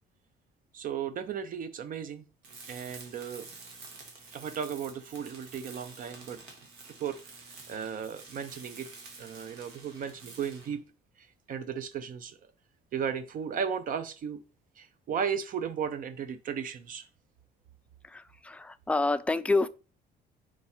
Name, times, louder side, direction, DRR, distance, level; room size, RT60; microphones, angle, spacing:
voice 1, 0.7-2.2 2.7-3.5 4.3-6.4 7.0-7.2 7.7-8.9 9.2-10.8 11.2-12.4 12.9-14.4 14.8-17.1, right 7 dB, 55° right, 0.6 m, -35 dB
Tools, 2.4-10.8, right 4 dB, 85° right, 1.8 m, -49 dB
voice 2, 18.0-19.7, left 3 dB, 5° left, 0.4 m, -28 dB
4.8 x 4.6 x 4.2 m
cardioid pair, 110°, 17 cm